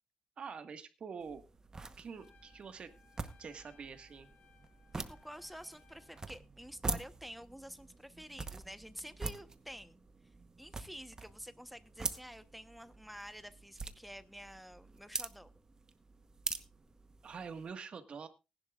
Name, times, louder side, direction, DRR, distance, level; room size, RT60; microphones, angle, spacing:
voice 1, 0.4-1.4 2.0-2.9 3.4-4.3 17.2-18.3, right 6 dB, 55° right, 8 dB, 1.6 m, -46 dB
sound 1, 1.2-17.7, right 3 dB, 30° right, 1.0 m, -45 dB
Trumpet, 2.1-6.4, left 7 dB, 80° left, 1.5 m, -66 dB
voice 2, 4.9-10.0 10.6-15.5, equal, ahead, 11 dB, 1.0 m, -49 dB
19.5 x 11.0 x 2.5 m, 0.28 s
cardioid pair, 100°, 2 cm